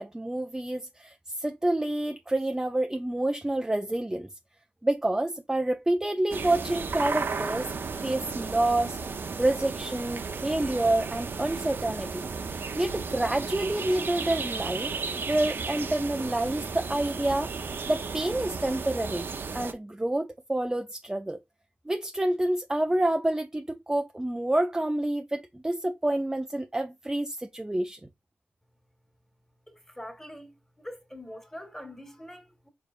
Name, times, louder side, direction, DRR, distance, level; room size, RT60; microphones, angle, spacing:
voice 1, 0.0-4.3 4.8-7.7 8.0-9.0 9.4-12.3 12.8-17.5 17.9-19.3 19.5-21.4 21.9-28.0, right 1 dB, 15° right, 0.5 m, -28 dB
sound 1, 6.3-19.7, right 5 dB, 55° right, 0.6 m, -34 dB
voice 2, 29.7-30.5 30.8-32.7, left 1 dB, 10° left, 1.6 m, -43 dB
4.9 x 3.3 x 2.5 m
cardioid pair, 50°, 4 cm